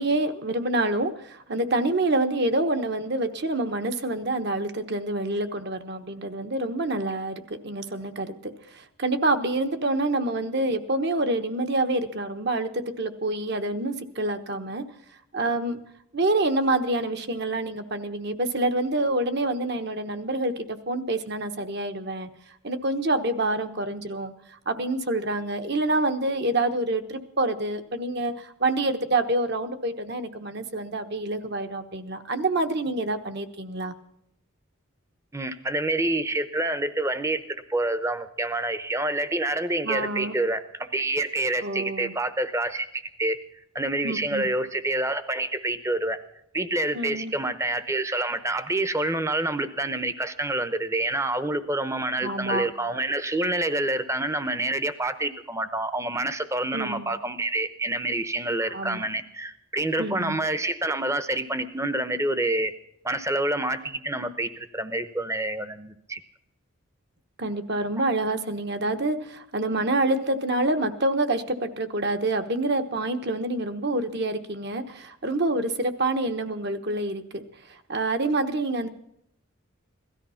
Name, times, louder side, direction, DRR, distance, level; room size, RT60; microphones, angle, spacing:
voice 1, 0.0-14.9 15.3-15.8 16.1-22.3 22.6-33.9 39.8-40.4 41.6-42.1 44.0-44.5 46.9-47.3 52.2-52.7 56.7-57.1 58.6-59.1 60.0-60.4 67.4-77.4 77.7-78.9, right 2 dB, 50° right, 8 dB, 1.2 m, -27 dB
voice 2, 35.3-43.4 43.7-46.2 46.5-62.7 63.0-66.2, right 2 dB, 15° right, 12 dB, 0.8 m, -27 dB
17.0 x 13.5 x 5.7 m, 0.76 s
head